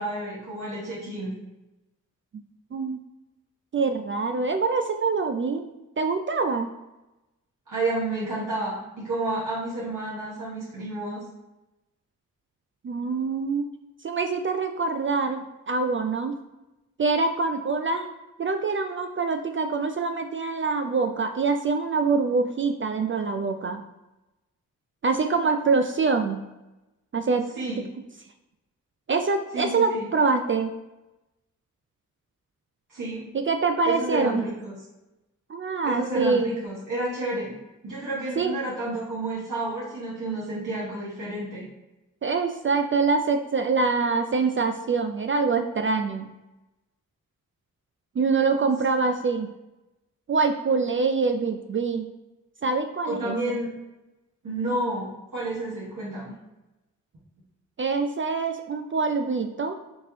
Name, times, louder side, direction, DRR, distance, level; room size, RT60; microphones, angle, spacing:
voice 1, 0.0-1.3 7.7-11.2 27.5-27.8 29.5-30.1 32.9-33.3 33.8-34.7 35.8-37.5 37.8-41.7 53.1-53.7 54.4-56.3, right 2 dB, 65° right, -8 dB, 1.3 m, -30 dB
voice 2, 3.7-5.6 6.0-6.7 12.8-13.7 14.0-16.4 17.0-18.1 18.4-23.8 25.0-26.4 27.1-27.5 29.1-30.7 33.3-34.4 35.5-36.5 38.4-38.5 42.2-46.3 48.2-49.5 50.3-52.1 52.6-53.6 57.8-59.8, right 4 dB, 35° right, 6 dB, 0.4 m, -25 dB
4.4 x 3.0 x 2.9 m, 1.0 s
cardioid pair, 45°, 34 cm